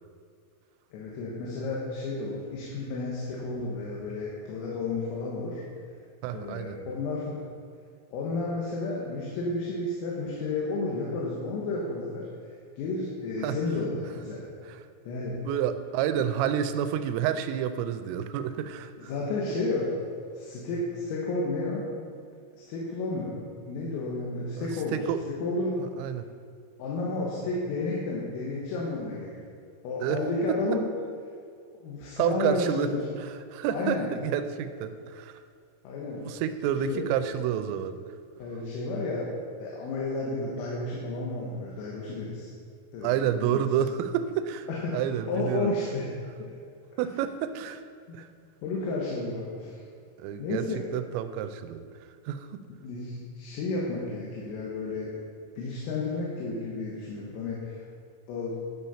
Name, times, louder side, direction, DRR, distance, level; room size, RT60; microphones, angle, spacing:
voice 1, 0.9-5.6 6.3-7.4 8.1-12.3 12.8-14.5 15.1-15.4 19.0-19.9 20.3-21.9 22.6-23.4 23.7-25.0 25.4-25.8 26.8-29.5 29.8-30.8 31.8-33.0 33.7-34.1 35.8-36.3 36.8-37.0 38.4-39.3 39.6-42.5 42.9-43.8 44.7-46.1 46.4-46.5 48.1-48.2 48.6-49.8 50.4-50.8 52.8-55.1 55.6-57.8 58.3-58.6, left 3 dB, 80° left, -4 dB, 4.0 m, -32 dB
voice 2, 6.2-6.8 13.4-13.6 14.7-14.8 15.4-19.1 24.6-25.2 25.8-26.3 30.0-30.2 32.2-32.9 33.2-35.4 36.1-38.0 43.0-45.7 47.0-47.8 48.1-48.3 50.2-50.7 50.9-52.6, right 10 dB, 85° right, 10 dB, 3.1 m, -29 dB
11.5 x 6.6 x 5.7 m, 2.3 s
omnidirectional pair, 6.0 m